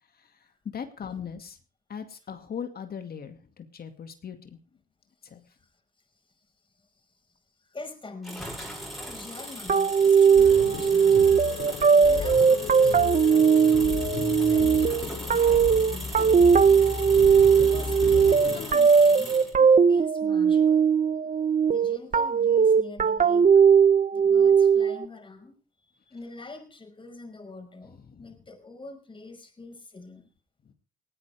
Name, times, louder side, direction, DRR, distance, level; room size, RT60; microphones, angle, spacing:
voice 1, 0.7-1.6 1.9-4.6 5.2-5.4 28.1-28.4 30.7-30.8, left 7 dB, 50° left, 7 dB, 2.3 m, -39 dB
voice 2, 7.6-8.6 9.1-11.4 12.0-14.1 14.4-16.5 17.5-20.9 21.6-23.6 24.1-25.6 25.8-30.3, left 3 dB, 25° left, 5 dB, 5.5 m, -44 dB
sound 1, 8.2-19.5, equal, ahead, 6.8 m, -39 dB
sound 2, 9.7-25.0, right 6 dB, 40° right, 1.1 m, -19 dB
sound 3, 10.3-18.7, left 6 dB, 65° left, 6.3 m, -33 dB
20.0 x 16.5 x 3.5 m, 0.35 s
cardioid pair, 90°, 20 cm